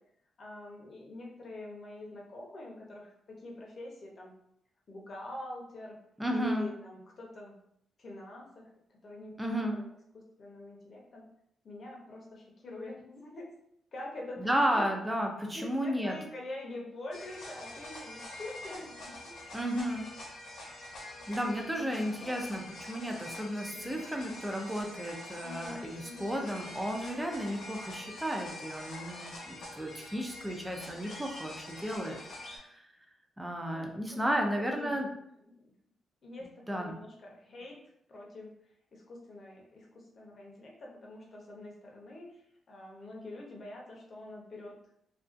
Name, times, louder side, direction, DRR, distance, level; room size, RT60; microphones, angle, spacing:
voice 1, 0.4-3.1 3.4-4.3 4.9-6.0 6.3-7.6 8.0-8.7 9.0-9.8 10.1-11.2 11.6-13.5 13.9-14.8 15.5-19.3 21.6-21.9 22.2-22.5 23.7-24.2 25.4-26.3 33.7-35.1 35.5-35.7 36.2-37.8 38.1-38.5 38.9-42.4 42.7-44.7, left 1 dB, 35° left, -1 dB, 0.6 m, -45 dB
voice 2, 6.2-6.7 9.4-9.8 14.4-16.2 19.5-20.1 21.3-32.2 32.5-32.8 33.4-35.1 36.7-36.9, equal, 5° right, 2 dB, 0.3 m, -33 dB
sound 1, 17.1-32.6, left 2 dB, 75° left, 0.8 m, -46 dB
2.4 x 2.3 x 2.4 m, 0.74 s
wide cardioid pair, 155°, 0 cm